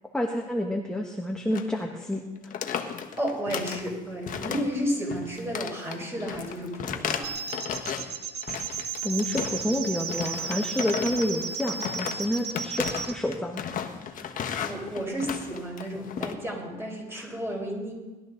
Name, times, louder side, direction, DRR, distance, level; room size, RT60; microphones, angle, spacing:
voice 1, 0.1-2.5 9.0-13.6 14.6-14.7 17.1-17.4, left 1 dB, 5° left, 1 dB, 1.4 m, -29 dB
sound 1, 1.5-1.8 2.0-2.2 2.4-3.9 4.3-4.8 5.1-8.1 8.4-9.7 10.1-16.3, left 8 dB, 50° left, 1.4 m, -34 dB
voice 2, 3.2-7.3 14.1-14.3 14.6-17.9, equal, 15° right, -1 dB, 5.4 m, -32 dB
sound 2, 7.2-13.2, right 6 dB, 80° right, 1.2 m, -34 dB
19.5 x 12.5 x 4.0 m, 1.2 s
cardioid pair, 110°, 17 cm